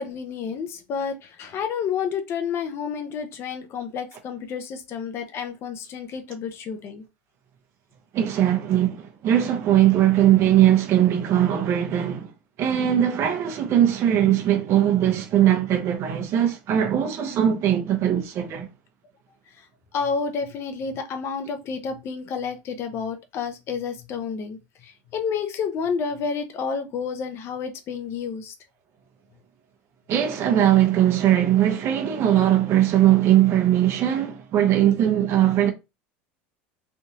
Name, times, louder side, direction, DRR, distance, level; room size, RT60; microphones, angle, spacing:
voice 1, 0.0-7.0 19.6-19.7 19.9-28.5, left 6 dB, 45° left, 0.8 m, -30 dB
voice 2, 8.1-12.3 12.6-18.7 30.1-35.7, right 11 dB, 45° right, 1.0 m, -20 dB
3.5 x 2.6 x 2.9 m
supercardioid pair, 110°, 6 cm